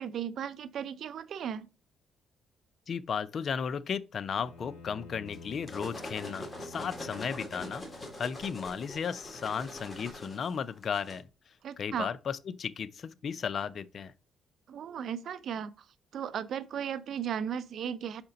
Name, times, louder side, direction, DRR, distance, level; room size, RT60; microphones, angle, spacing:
voice 1, 0.0-1.7 11.6-12.1 14.7-15.9 16.1-18.2, right 8 dB, 65° right, 0.5 m, -36 dB
voice 2, 2.9-7.8 8.2-11.3 11.8-14.1, left 6 dB, 55° left, 0.5 m, -35 dB
Bowed string instrument, 4.3-8.8, left 3 dB, 70° left, 2.7 m, -51 dB
sound 1, 5.3-11.2, left 1 dB, 25° left, 1.9 m, -43 dB
6.6 x 4.3 x 3.8 m
cardioid pair, 90°, 0 cm